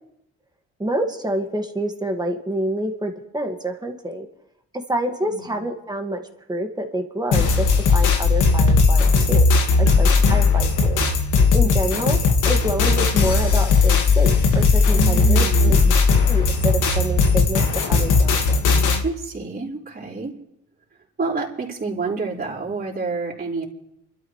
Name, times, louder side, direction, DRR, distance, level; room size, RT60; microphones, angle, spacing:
voice 1, 0.8-4.3 4.7-6.2 6.5-9.5 9.8-11.0 11.5-12.2 12.4-15.8 16.3-18.6, right 1 dB, 15° right, 4 dB, 2.0 m, -27 dB
voice 2, 5.3-5.6 9.8-10.1 11.6-12.1 14.9-15.7 19.0-20.3 21.2-23.6, right 3 dB, 30° right, -4 dB, 4.3 m, -29 dB
sound 1, 7.3-19.0, left 4 dB, 90° left, 2.0 m, -17 dB
29.0 x 13.0 x 3.3 m, 0.79 s
cardioid pair, 90°, 30 cm